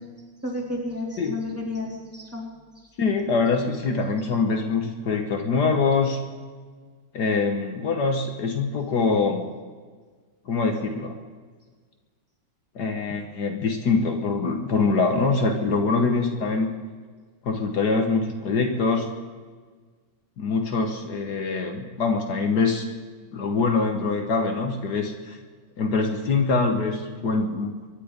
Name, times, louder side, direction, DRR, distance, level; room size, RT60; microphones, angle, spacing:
voice 1, 0.4-2.5, left 2 dB, 5° right, -3 dB, 3.8 m, -31 dB
voice 2, 3.0-6.2 7.1-9.4 10.5-11.2 12.8-16.7 17.4-19.1 20.4-22.9 23.3-25.4 25.8-27.7, left 4 dB, 70° left, 4 dB, 1.8 m, -24 dB
24.0 x 11.0 x 5.2 m, 1.5 s
omnidirectional pair, 1.9 m